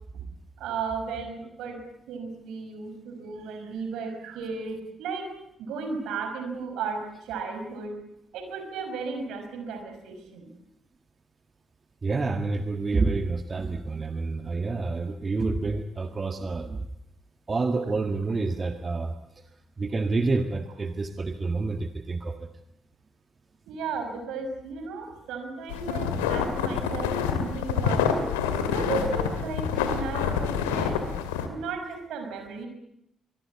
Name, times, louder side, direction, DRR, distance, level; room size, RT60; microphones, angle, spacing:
voice 1, 0.6-5.3 5.6-8.0 8.3-10.5 23.7-28.1 28.7-31.0 31.5-32.7, right 4 dB, 70° right, 6 dB, 5.8 m, -35 dB
voice 2, 12.0-16.8 17.5-19.1 19.8-22.5 29.8-29.9, right 3 dB, 35° right, 7 dB, 1.8 m, -28 dB
sound 1, 25.7-31.5, left 7 dB, 85° left, 2.3 m, -27 dB
24.0 x 21.5 x 8.6 m, 0.76 s
hypercardioid pair, 45°, 0 cm